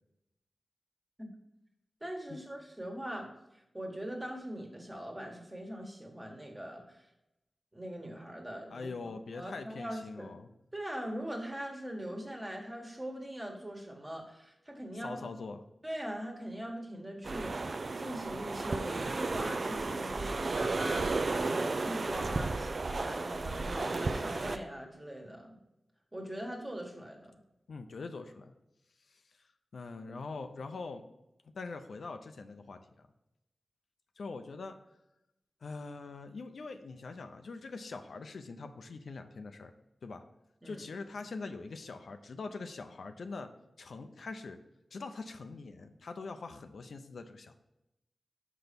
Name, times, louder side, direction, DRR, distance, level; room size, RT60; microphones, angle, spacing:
voice 1, 2.0-3.3 3.7-7.0 7.7-8.9 9.3-10.3 10.7-15.2 15.8-25.6 26.1-27.3 40.6-40.8, equal, 20° right, 1 dB, 1.5 m, -41 dB
voice 2, 8.7-10.5 15.0-15.6 27.7-28.5 29.1-29.2 29.7-31.0 31.5-33.1 34.2-34.8 35.6-39.7 40.0-40.2 40.6-43.5 43.8-44.6 44.9-47.5, left 3 dB, 85° left, 7 dB, 0.6 m, -43 dB
sound 1, 17.2-24.6, right 3 dB, 55° right, 0.4 m, -33 dB
6.1 x 5.5 x 5.2 m, 0.88 s
wide cardioid pair, 100°, 0 cm